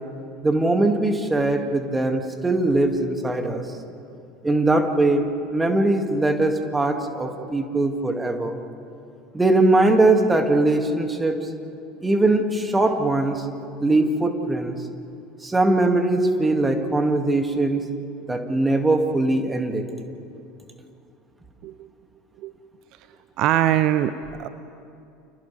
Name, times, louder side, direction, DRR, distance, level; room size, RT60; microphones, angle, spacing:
voice 1, 0.4-3.6 4.4-8.6 9.3-11.4 12.0-13.5 13.8-14.8 15.4-17.9 18.3-19.9, right 2 dB, 15° right, 4 dB, 2.3 m, -21 dB
voice 2, 23.4-24.5, right 12 dB, 55° right, 12 dB, 0.6 m, -22 dB
29.0 x 28.5 x 3.5 m, 2.6 s
hypercardioid pair, 75°, 0 cm